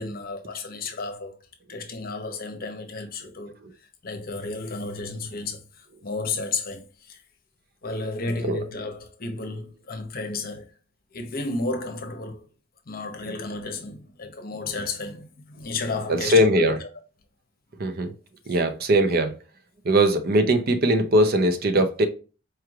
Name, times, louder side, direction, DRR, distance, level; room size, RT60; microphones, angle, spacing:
voice 1, 0.0-1.4 1.7-3.5 4.0-7.2 7.8-10.7 11.1-12.5 12.9-16.9, left 3 dB, 50° left, 0.7 m, -32 dB
voice 2, 16.1-16.8 17.8-18.1 18.5-19.3 19.9-22.1, right 1 dB, 50° right, 0.6 m, -20 dB
4.6 x 3.1 x 2.3 m
head